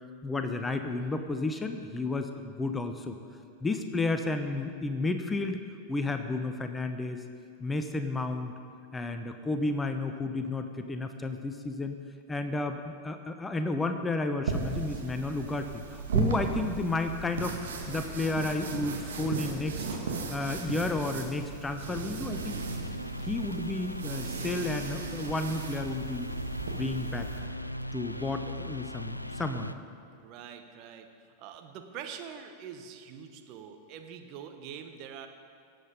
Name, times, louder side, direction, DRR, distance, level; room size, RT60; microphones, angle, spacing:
voice 1, 0.2-3.2 3.6-5.6 5.9-7.2 7.6-8.5 8.9-11.9 12.3-17.6 17.9-19.8 20.3-22.6 23.2-26.3 26.6-27.3 27.9-29.7, left 2 dB, 10° left, 7 dB, 0.7 m, -32 dB
sound 1, 14.5-27.4, right 4 dB, 65° right, 1.8 m, -36 dB
sound 2, 22.3-29.7, equal, 90° left, 0.4 m, -39 dB
voice 2, 28.1-28.8 30.2-35.3, right 8 dB, 40° right, 6 dB, 1.0 m, -45 dB
17.5 x 7.9 x 5.2 m, 2.3 s
figure-of-eight pair, 90°, 0 cm